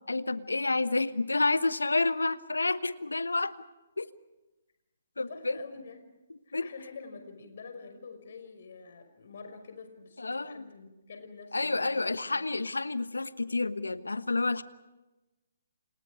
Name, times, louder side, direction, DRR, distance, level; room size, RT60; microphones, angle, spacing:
voice 1, 0.1-3.5 4.0-4.1 5.2-5.6 6.5-6.7 10.2-10.5 11.5-14.6, left 3 dB, 85° left, 14 dB, 1.2 m, -29 dB
voice 2, 5.2-6.0 6.5-12.5, left 4 dB, 60° left, 7 dB, 5.6 m, -47 dB
30.0 x 27.5 x 5.0 m, 1.1 s
figure-of-eight pair, 135°, 0 cm